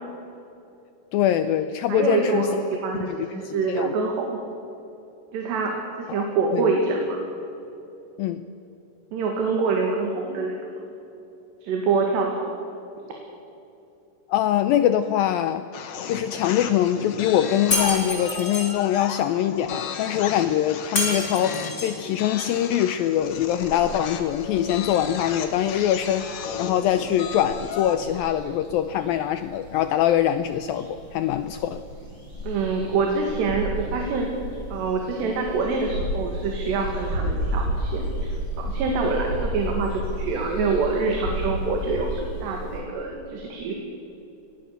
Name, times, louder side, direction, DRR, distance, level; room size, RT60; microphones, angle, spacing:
voice 1, 1.1-2.6 2.9-3.9 6.1-6.2 6.5-6.7 8.2-8.5 14.3-15.7 16.0-26.3 26.6-31.8, left 11 dB, 85° left, 11 dB, 2.1 m, -23 dB
voice 2, 1.9-4.4 5.3-7.2 9.1-10.8 11.6-12.5 32.4-34.3 34.7-43.7, right 4 dB, 80° right, 1 dB, 4.3 m, -26 dB
sound 1, 15.7-28.1, left 6 dB, 60° left, 2.7 m, -35 dB
Shatter, 17.7-18.7 21.0-22.0, left 1 dB, 15° left, 4.6 m, -27 dB
sound 2, 23.2-42.8, right 1 dB, 35° right, 8.5 m, -33 dB
24.0 x 18.5 x 6.7 m, 2.8 s
omnidirectional pair, 4.9 m